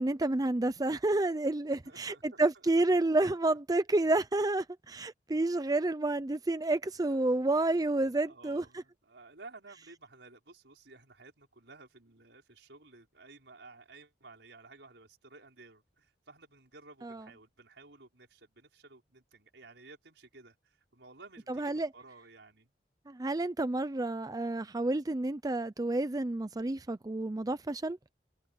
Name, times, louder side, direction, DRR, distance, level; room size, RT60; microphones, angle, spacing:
voice 1, 0.0-8.6 17.0-17.2 21.5-21.9 23.1-28.0, right 2 dB, 20° right, 0.5 m, -30 dB
voice 2, 1.8-2.7 3.3-3.4 7.1-7.4 8.3-22.7, right 3 dB, 80° right, 5.4 m, -55 dB
head